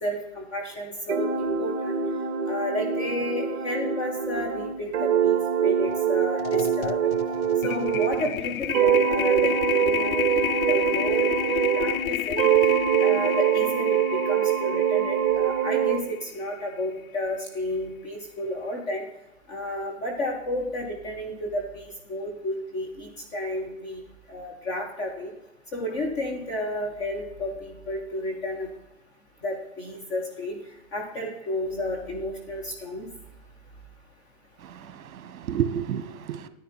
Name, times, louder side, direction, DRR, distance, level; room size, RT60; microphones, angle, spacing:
voice 1, 0.0-2.0 2.5-7.0 7.6-10.3 10.7-11.3 11.8-12.4 13.0-19.0 19.5-24.0 24.3-25.3 25.7-28.7 29.4-30.6 30.9-33.1, left 1 dB, 10° left, 0 dB, 0.4 m, -32 dB
sound 1, 1.1-8.3 8.7-12.1 12.4-16.0, right 8 dB, 40° right, 1.3 m, -24 dB
sound 2, 5.9-6.1 6.4-16.6, left 13 dB, 70° left, 0.6 m, -31 dB
voice 2, 34.6-36.5, right 9 dB, 65° right, 12 dB, 1.1 m, -31 dB
10.5 x 9.2 x 4.2 m, 0.91 s
hypercardioid pair, 135°, 44 cm